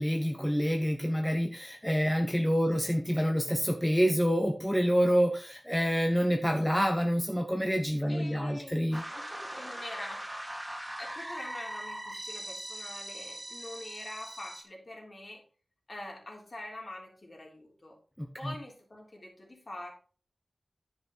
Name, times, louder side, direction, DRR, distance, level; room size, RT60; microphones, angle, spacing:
voice 1, 0.0-9.0 18.2-18.5, equal, 5° left, 4 dB, 1.1 m, -27 dB
voice 2, 8.1-10.3 11.0-15.4 15.9-18.0 18.4-19.9, left 1 dB, 50° left, -1 dB, 3.4 m, -45 dB
sound 1, 8.9-14.6, right 1 dB, 15° right, 2.4 m, -41 dB
10.5 x 5.9 x 4.1 m, 0.38 s
wide cardioid pair, 70°, 0 cm